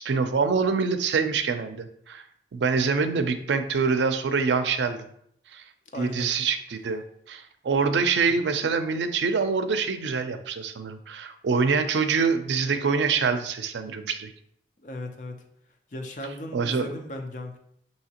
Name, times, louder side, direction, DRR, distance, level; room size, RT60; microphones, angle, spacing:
voice 1, 0.0-2.2 2.5-5.0 5.5-5.6 6.0-7.0 7.3-14.3 16.5-16.9, right 5 dB, 85° right, 9 dB, 0.4 m, -25 dB
voice 2, 5.9-6.3 14.8-15.4 15.9-17.6, left 1 dB, 45° left, 3 dB, 0.6 m, -36 dB
5.6 x 2.8 x 2.8 m, 0.70 s
head